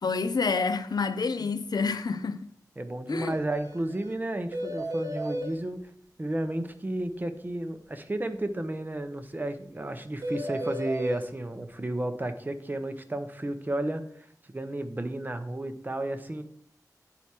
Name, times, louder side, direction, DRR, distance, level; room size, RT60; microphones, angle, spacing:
voice 1, 0.0-2.5 3.1-3.3, left 4 dB, 85° left, 0.6 m, -28 dB
voice 2, 2.8-5.9 6.2-16.4, right 1 dB, 30° right, 0.8 m, -32 dB
sound 1, 3.3-3.4 3.6-3.8 4.0-4.1 4.5-5.5 10.2-11.2, equal, 60° right, 1.2 m, -33 dB
9.7 x 4.7 x 4.4 m
wide cardioid pair, 90°, 7 cm